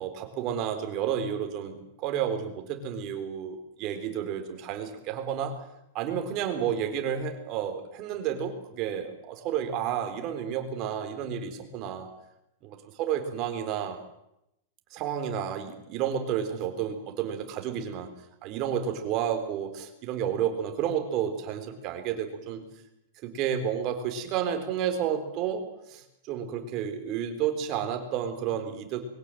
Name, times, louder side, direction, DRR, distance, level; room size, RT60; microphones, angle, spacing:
voice 1, 0.0-5.5 5.9-12.1 12.6-14.0 14.9-18.1 18.4-22.6 23.2-29.1, right 9 dB, 30° right, 6 dB, 3.9 m, -31 dB
22.5 x 17.0 x 9.2 m, 0.81 s
supercardioid pair, 170°, 0 cm